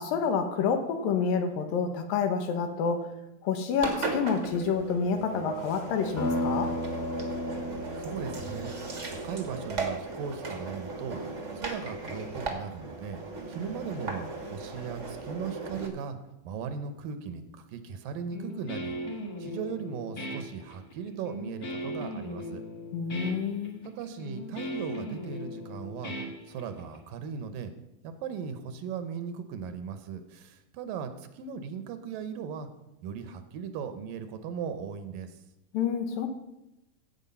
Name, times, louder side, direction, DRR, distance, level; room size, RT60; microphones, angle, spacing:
voice 1, 0.0-3.1 3.4-6.7 22.9-23.8 35.7-36.3, left 6 dB, 80° left, 6 dB, 2.9 m, -28 dB
Engine, 3.8-15.9, right 3 dB, 35° right, 1.1 m, -37 dB
sound 1, 6.2-10.4, left 1 dB, 25° left, 1.1 m, -34 dB
voice 2, 8.0-13.2 13.5-16.2 16.4-19.0 19.4-22.6 23.8-26.1 26.5-27.7 28.0-32.7 33.0-35.4, right 6 dB, 75° right, 10 dB, 2.6 m, -38 dB
Guitar, 18.3-27.0, equal, 40° left, 1.4 m, -38 dB
16.0 x 8.1 x 5.6 m, 0.91 s
omnidirectional pair, 4.1 m